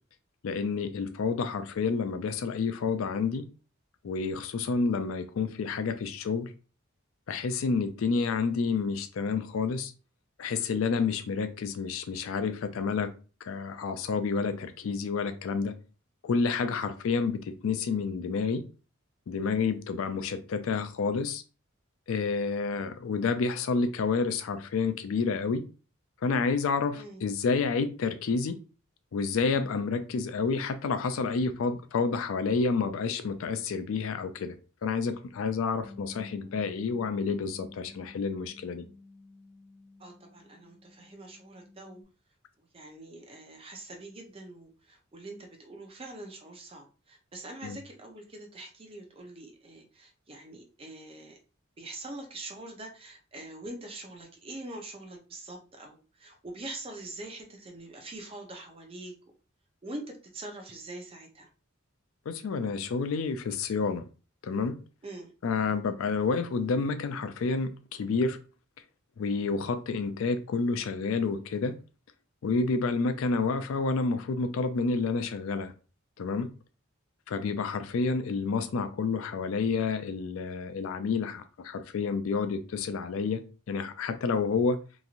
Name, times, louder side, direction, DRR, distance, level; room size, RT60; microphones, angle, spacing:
voice 1, 0.4-3.5 4.0-6.5 7.3-9.9 10.4-13.1 13.4-15.8 16.2-18.6 19.3-21.4 22.1-25.6 26.2-28.6 29.1-34.5 34.8-38.8 47.6-47.8 62.3-64.0 64.4-64.8 65.4-68.4 69.2-71.8 72.4-75.7 76.2-76.5 77.3-83.4 83.7-84.8, left 4 dB, 70° left, 0.4 m, -29 dB
Bass guitar, 35.8-42.0, left 3 dB, 10° right, 1.0 m, -51 dB
voice 2, 40.0-42.0 42.6-51.4 51.8-59.1 59.8-61.5 65.0-65.3, right 2 dB, 25° right, 0.5 m, -44 dB
3.0 x 2.6 x 2.4 m
head